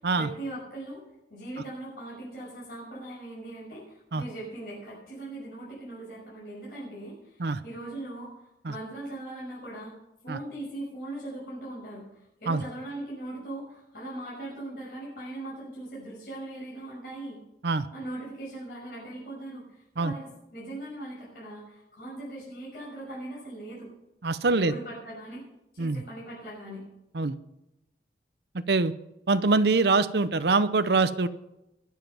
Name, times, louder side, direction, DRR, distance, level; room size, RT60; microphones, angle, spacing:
voice 1, 0.1-1.0 1.3-8.3 8.7-9.9 10.2-17.4 17.9-23.9 24.5-25.4 25.7-26.8, right 1 dB, 55° left, -7 dB, 6.2 m, -40 dB
voice 2, 24.2-24.7 25.8-26.0 27.1-27.4 28.7-28.9 29.3-31.3, right 3 dB, 70° right, 12 dB, 0.7 m, -24 dB
22.0 x 7.5 x 5.8 m, 0.88 s
head